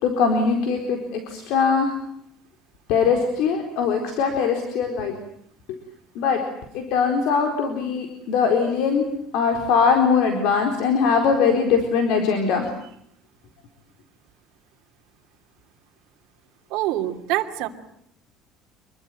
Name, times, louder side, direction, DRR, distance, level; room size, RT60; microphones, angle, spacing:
voice 1, 0.0-1.9 2.9-5.1 6.2-6.4 6.7-9.1 9.3-12.7, left 5 dB, 70° left, 5 dB, 4.3 m, -21 dB
voice 2, 16.7-17.7, right 15 dB, 65° right, 3 dB, 2.9 m, -25 dB
26.5 x 22.5 x 9.3 m, 0.71 s
cardioid pair, 170°, 0 cm